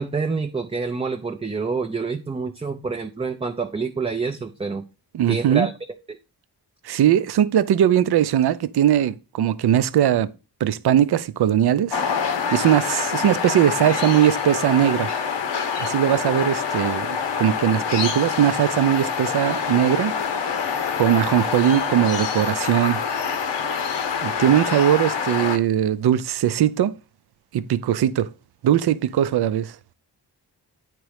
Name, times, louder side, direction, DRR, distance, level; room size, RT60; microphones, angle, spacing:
voice 1, 0.0-4.8 5.3-5.7 6.1-6.2, right 4 dB, 15° right, 0.4 m, -27 dB
voice 2, 5.1-5.7 6.8-10.3 10.6-12.0 12.5-15.1 15.8-20.1 21.0-23.0 24.2-26.9 27.5-28.3 28.6-29.8, right 10 dB, 65° right, 0.5 m, -20 dB
sound 1, 11.9-25.6, left 6 dB, 85° left, 0.9 m, -26 dB
9.1 x 3.1 x 4.8 m
wide cardioid pair, 95°, 42 cm